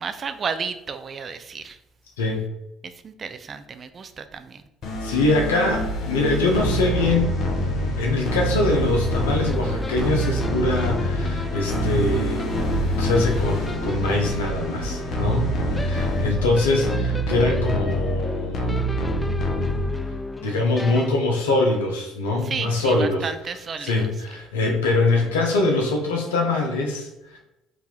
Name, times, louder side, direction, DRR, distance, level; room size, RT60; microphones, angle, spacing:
voice 1, 0.0-1.8 2.8-4.6 15.9-16.3 22.4-24.1, right 5 dB, 45° right, 10 dB, 0.5 m, -33 dB
sound 1, 4.8-20.2, equal, 60° left, 1.1 m, -26 dB
voice 2, 5.0-7.4 8.0-12.5 13.0-15.5 15.8-18.8 20.4-23.3 23.8-27.4, left 2 dB, 90° left, 2 dB, 0.9 m, -23 dB
sound 2, 9.4-21.1, left 2 dB, 15° left, 0.4 m, -34 dB
4.7 x 2.7 x 3.9 m, 0.90 s
hypercardioid pair, 60°, 0 cm